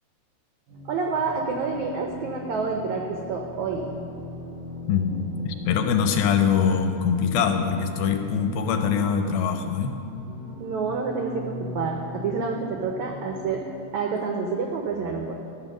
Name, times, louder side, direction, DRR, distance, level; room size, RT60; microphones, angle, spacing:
sound 1, 0.7-13.8, left 1 dB, 65° right, 4.4 m, -40 dB
voice 1, 0.9-3.9 10.6-13.6 13.9-15.4, right 4 dB, 90° right, 2 dB, 1.6 m, -28 dB
voice 2, 4.9-9.9, left 7 dB, 80° left, 5 dB, 2.5 m, -23 dB
13.5 x 7.7 x 6.0 m, 2.6 s
omnidirectional pair, 4.4 m